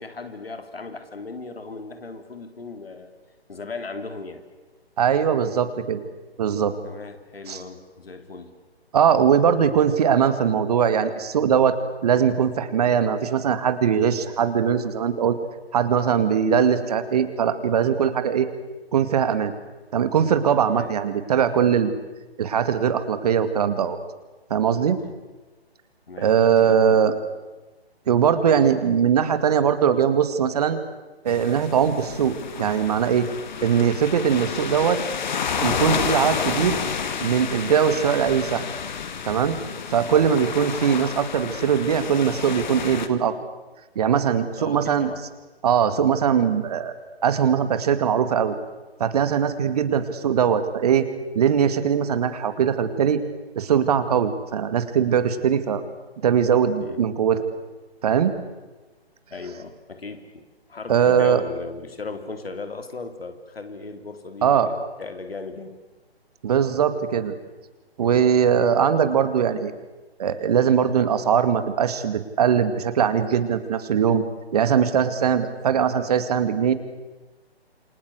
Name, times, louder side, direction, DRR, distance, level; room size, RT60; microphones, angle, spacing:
voice 1, 0.0-3.1 3.5-4.5 6.8-8.6 20.6-20.9 25.0-25.1 26.1-27.0 40.6-40.7 44.6-45.2 56.8-57.0 59.3-60.4 60.7-64.7 65.0-65.7 68.0-68.2, left 3 dB, 65° left, 8 dB, 3.6 m, -37 dB
voice 2, 5.0-6.1 6.4-6.7 7.5-7.6 8.9-11.8 12.0-15.4 15.7-18.5 18.9-19.5 19.9-21.9 22.4-24.0 24.5-25.0 26.2-27.1 28.1-30.8 31.2-33.3 33.6-35.0 35.6-36.8 37.2-38.6 39.3-39.6 39.9-43.4 44.0-45.1 45.6-46.9 47.2-48.5 49.0-51.1 51.3-53.2 53.6-55.8 56.2-57.4 58.0-58.3 60.9-61.4 64.4-64.9 66.4-67.3 68.0-69.7 70.2-74.2 74.5-76.7, right 8 dB, 40° right, 11 dB, 2.1 m, -21 dB
sound 1, 31.3-43.1, left 6 dB, 45° left, 2.2 m, -30 dB
28.0 x 24.5 x 8.2 m, 1.2 s
figure-of-eight pair, 140°, 32 cm